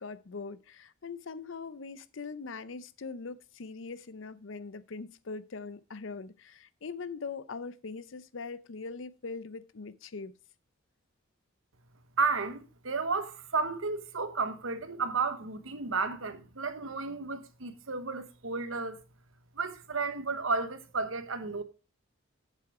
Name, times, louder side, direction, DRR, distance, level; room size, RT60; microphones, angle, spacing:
voice 1, 0.0-10.3, left 4 dB, 65° left, 0.6 m, -41 dB
voice 2, 12.2-19.0 19.5-21.6, right 4 dB, 75° right, 1.1 m, -32 dB
7.5 x 7.2 x 4.8 m
head